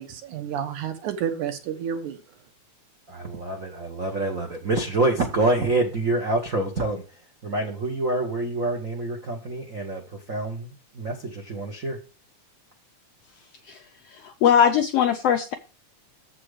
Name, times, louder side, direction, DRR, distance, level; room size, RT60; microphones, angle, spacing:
voice 1, 0.0-2.4, right 8 dB, 80° right, 7 dB, 2.6 m, -30 dB
voice 2, 3.1-12.0, right 2 dB, 60° right, 2 dB, 0.8 m, -27 dB
voice 3, 14.1-15.5, left 8 dB, 80° left, 6 dB, 1.4 m, -20 dB
7.7 x 6.0 x 4.9 m, 0.33 s
omnidirectional pair, 3.5 m